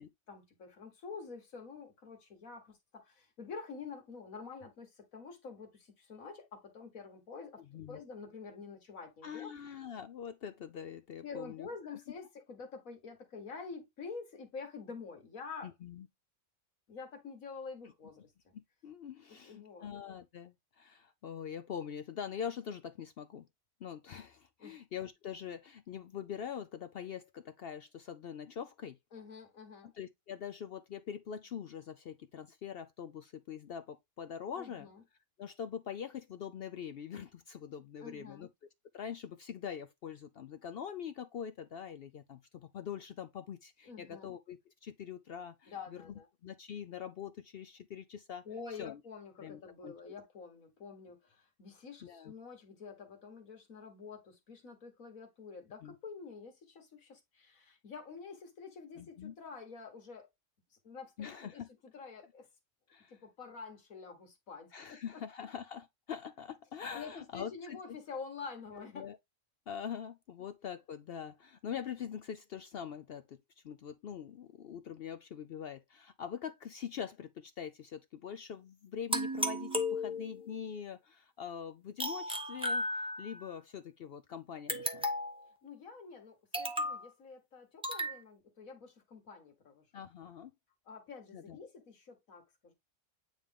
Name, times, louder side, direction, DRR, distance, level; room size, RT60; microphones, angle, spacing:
voice 1, 0.0-9.5 11.2-15.7 16.9-18.5 19.3-19.9 24.6-24.8 29.1-29.9 34.6-35.0 38.0-38.5 43.9-44.3 45.7-46.3 48.5-60.3 60.7-62.5 63.1-65.2 66.9-69.1 85.6-89.9 90.9-92.7, left 5 dB, 85° left, 2.1 m, -48 dB
voice 2, 9.2-12.0 15.6-16.1 18.8-23.5 23.8-29.0 29.9-34.9 35.4-38.5 38.9-48.4 48.8-49.0 49.4-49.9 52.0-52.3 55.8-55.9 59.0-59.3 61.2-61.7 62.9-63.1 64.7-67.8 68.8-69.2 69.7-85.1 89.9-90.5 91.3-91.6, left 8 dB, 65° left, 0.6 m, -43 dB
sound 1, 79.1-80.5 82.0-83.4 84.7-85.5 86.5-87.1 87.8-88.2, left 1 dB, 5° right, 0.7 m, -34 dB
9.0 x 3.4 x 3.5 m
omnidirectional pair, 1.4 m